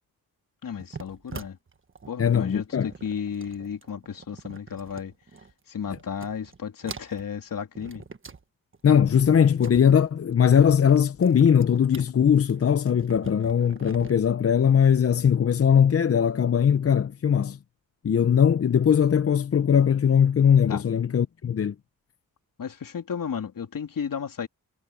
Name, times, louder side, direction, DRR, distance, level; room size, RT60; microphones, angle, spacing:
voice 1, 0.6-1.6 2.1-5.1 5.7-8.0 20.7-20.8 22.6-24.5, left 7 dB, 60° left, 3.3 m, -33 dB
sound 1, 0.8-5.5 5.8-6.6 6.8-8.4 8.7-14.1, right 5 dB, 35° right, 1.4 m, -44 dB
voice 2, 2.2-2.9 8.8-17.6 18.0-21.7, left 8 dB, 40° left, 0.7 m, -20 dB
cardioid pair, 90°, 37 cm